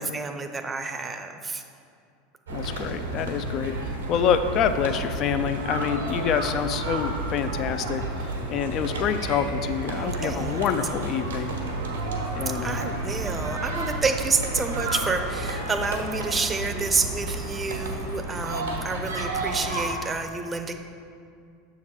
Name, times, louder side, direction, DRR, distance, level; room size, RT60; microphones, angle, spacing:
voice 1, 0.0-1.6 9.9-10.6 12.6-20.7, right 4 dB, 20° right, 6 dB, 0.6 m, -29 dB
voice 2, 2.5-11.5 12.3-12.8, left 8 dB, 50° left, 9 dB, 0.4 m, -27 dB
sound 1, 2.5-19.9, right 2 dB, 90° right, 1.1 m, -31 dB
6.9 x 3.8 x 6.2 m, 2.4 s
hypercardioid pair, 90°, 0 cm